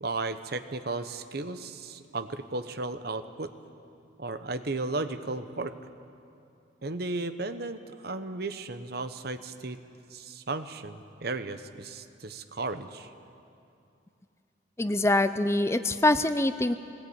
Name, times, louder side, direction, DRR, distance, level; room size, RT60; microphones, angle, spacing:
voice 1, 0.0-3.5 4.2-5.7 6.8-9.8 10.1-13.1, right 3 dB, 55° right, 10 dB, 1.0 m, -35 dB
voice 2, 14.8-16.7, left 2 dB, 15° left, 11 dB, 0.5 m, -24 dB
20.0 x 19.5 x 8.7 m, 2.6 s
head